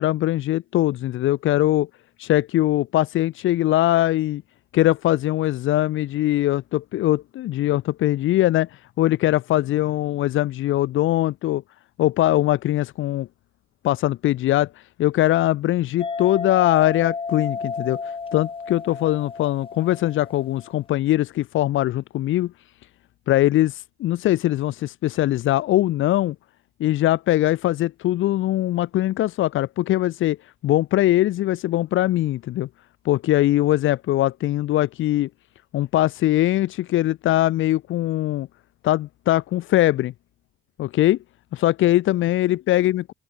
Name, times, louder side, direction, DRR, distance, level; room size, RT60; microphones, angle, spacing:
voice 1, 0.0-1.9 2.2-4.4 4.7-8.7 9.0-11.6 12.0-13.3 13.8-14.7 15.0-18.0 18.3-22.5 23.3-26.3 26.8-30.4 30.6-32.7 33.0-35.3 35.7-38.5 38.8-40.1 40.8-41.2 41.5-43.1, left 14 dB, 80° left, 1.2 m, -21 dB
sound 1, 16.0-20.7, left 4 dB, 25° left, 1.3 m, -32 dB
open air
cardioid pair, 90°, 20 cm